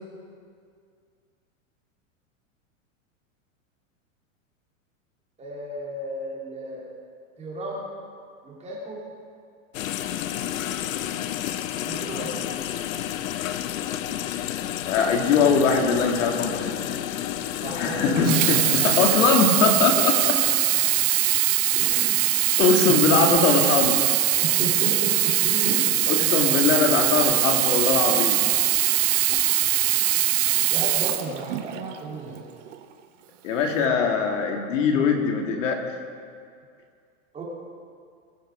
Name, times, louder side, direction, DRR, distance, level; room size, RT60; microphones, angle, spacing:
voice 1, 5.4-6.9 7.4-7.8 8.4-9.0 11.8-12.6 17.6-18.1 19.9-20.1 21.7-22.2 22.9-23.0 24.4-25.8 30.6-32.4 37.3-37.4, right 2 dB, 15° right, -4 dB, 3.4 m, -34 dB
sound 1, 9.7-19.4, left 11 dB, 85° left, 0.8 m, -30 dB
voice 2, 14.9-16.7 17.7-20.3 22.6-24.0 26.1-28.4 33.4-35.8, left 5 dB, 70° left, 3 dB, 2.1 m, -21 dB
Sink (filling or washing), 18.2-31.9 32.7-32.8, right 15 dB, 65° right, 1.1 m, -22 dB
22.5 x 7.7 x 4.9 m, 2.2 s
supercardioid pair, 150°, 39 cm